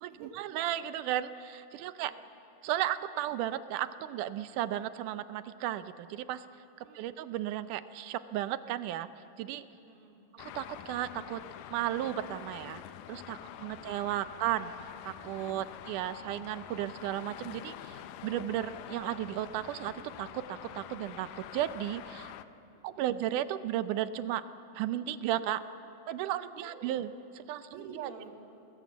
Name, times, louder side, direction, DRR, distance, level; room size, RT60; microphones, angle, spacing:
voice 1, 0.0-2.1 2.6-6.5 7.0-9.1 9.4-9.7 10.3-11.4 11.7-12.8 13.1-14.7 15.1-19.9 20.2-22.3 22.8-24.4 24.8-25.6 26.1-27.1 27.4-28.1, right 12 dB, 85° right, 13 dB, 2.2 m, -34 dB
voice 2, 1.8-2.2 6.8-7.2 9.7-10.2 13.4-14.4 15.5-15.9 22.7-23.2 26.5-26.9 27.7-28.3, right 5 dB, 60° right, 0 dB, 3.7 m, -52 dB
Traffic noise roadway noise, 10.4-22.4, left 11 dB, 85° left, 2.3 m, -46 dB
25.5 x 20.0 x 7.2 m, 2.8 s
omnidirectional pair, 3.6 m